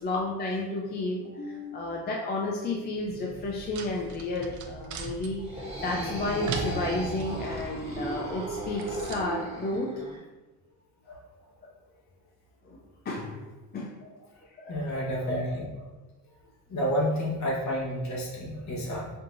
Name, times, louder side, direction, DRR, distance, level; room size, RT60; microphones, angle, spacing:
voice 1, 0.0-9.9 12.6-12.8 13.1-13.4 13.7-13.9 14.6-15.4, left 2 dB, 25° left, -1 dB, 0.4 m, -32 dB
sound 1, 2.9-9.2, right 5 dB, 55° right, 0.5 m, -40 dB
sound 2, 5.4-10.2, right 2 dB, 15° right, 1.3 m, -36 dB
voice 2, 14.6-15.7 16.7-19.1, equal, 50° left, -4 dB, 1.3 m, -30 dB
5.4 x 2.7 x 2.6 m, 1.2 s
cardioid pair, 135°, 37 cm